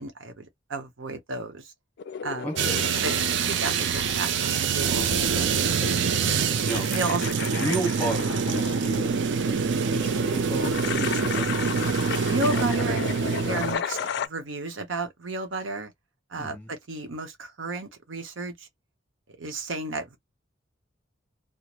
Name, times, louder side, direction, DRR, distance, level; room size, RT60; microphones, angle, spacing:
voice 1, 0.0-1.7 2.2-2.5 3.0-4.3 4.6-5.1 5.6-5.9 6.9-7.7 12.2-15.9 16.3-18.7 19.3-20.2, right 3 dB, 85° right, 0.8 m, -33 dB
sound 1, 2.0-14.3, left 7 dB, 60° left, 0.3 m, -35 dB
voice 2, 2.4-2.8 4.9-5.3 6.4-6.9 7.4-9.1 9.6-11.5 16.4-16.7, right 1 dB, 10° left, 1.2 m, -33 dB
sound 2, 2.6-13.8, right 6 dB, 65° right, 0.4 m, -25 dB
3.0 x 2.0 x 2.3 m
head